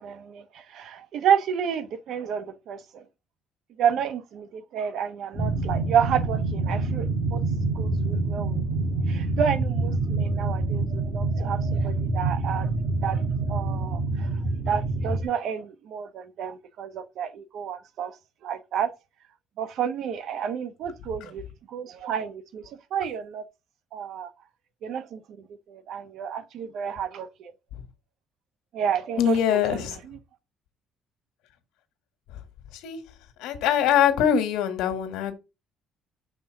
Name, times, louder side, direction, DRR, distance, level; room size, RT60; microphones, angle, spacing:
voice 1, 0.0-3.0 3.8-7.1 7.3-7.4 7.7-12.7 13.0-14.3 14.7-18.1 18.4-18.9 19.6-21.4 21.7-23.4 23.9-24.3 24.8-25.2 25.7-27.5 28.7-29.8, right 8 dB, 65° right, 1.0 m, -30 dB
sound 1, 5.3-15.2, right 3 dB, 35° right, 2.7 m, -26 dB
voice 2, 29.2-30.0 32.3-32.4 32.7-33.0 33.4-35.3, left 9 dB, 85° left, 1.6 m, -23 dB
6.2 x 4.2 x 6.4 m
cardioid pair, 130°, 0 cm